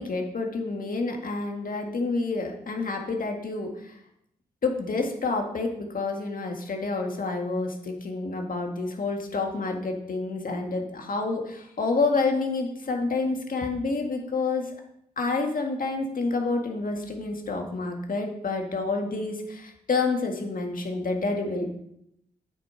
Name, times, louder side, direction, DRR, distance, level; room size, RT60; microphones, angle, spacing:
voice 1, 0.0-3.7 4.6-14.7 15.2-21.8, left 3 dB, 60° left, 3 dB, 1.8 m, -28 dB
8.6 x 5.0 x 5.9 m, 0.76 s
supercardioid pair, 45°, 16 cm